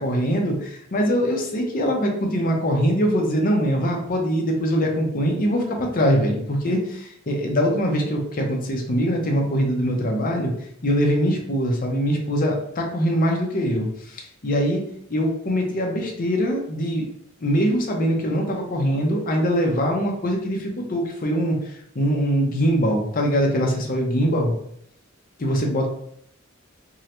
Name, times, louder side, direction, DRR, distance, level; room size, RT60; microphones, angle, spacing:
voice 1, 0.0-10.5 10.8-14.8 15.1-17.0 17.4-21.6 21.9-24.5 25.4-25.9, equal, 40° left, 1 dB, 0.7 m, -22 dB
3.6 x 2.1 x 2.9 m, 0.69 s
head